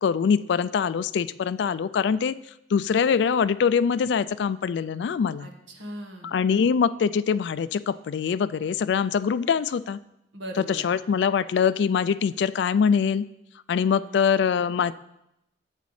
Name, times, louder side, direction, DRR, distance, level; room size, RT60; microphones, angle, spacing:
voice 1, 0.0-2.3 2.7-5.5 6.2-10.0 10.7-13.3 13.7-14.9, left 6 dB, 65° left, 15 dB, 0.3 m, -23 dB
voice 2, 5.4-6.3 10.3-10.8 13.9-14.3, right 1 dB, 80° right, 3 dB, 1.3 m, -39 dB
11.0 x 8.2 x 3.2 m, 0.84 s
head